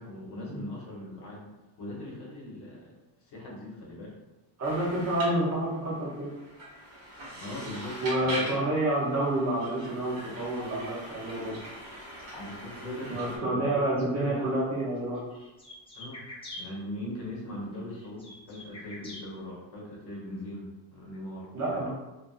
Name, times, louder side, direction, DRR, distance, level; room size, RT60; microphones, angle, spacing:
voice 1, 0.0-1.4 1.8-2.9 3.3-4.1 7.4-8.5 12.3-14.6 15.9-16.2 16.6-21.8, left 1 dB, 55° left, -4 dB, 0.9 m, -40 dB
voice 2, 4.6-6.3 8.0-11.6 13.1-15.2 21.5-21.9, right 1 dB, 35° right, -5 dB, 0.7 m, -28 dB
sound 1, 4.6-13.4, right 1 dB, 80° right, 1.1 m, -42 dB
sound 2, 14.0-14.1 15.0-16.6 17.7-19.2, left 2 dB, 10° left, 0.5 m, -44 dB
2.5 x 2.5 x 2.3 m, 1.0 s
cardioid pair, 155°, 48 cm